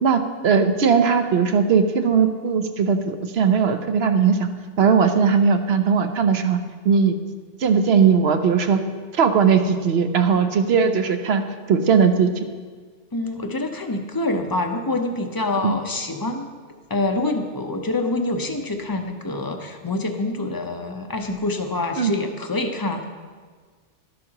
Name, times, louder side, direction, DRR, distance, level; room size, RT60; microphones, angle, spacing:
voice 1, 0.0-4.4 4.8-6.6 6.8-7.2 7.6-8.8 9.1-11.4 11.7-12.3 15.6-15.7 22.0-22.1, right 6 dB, 60° right, 7 dB, 1.0 m, -18 dB
voice 2, 13.1-16.5 16.9-23.0, left 2 dB, 20° left, 4 dB, 0.6 m, -26 dB
12.5 x 12.0 x 2.9 m, 1.5 s
omnidirectional pair, 1.2 m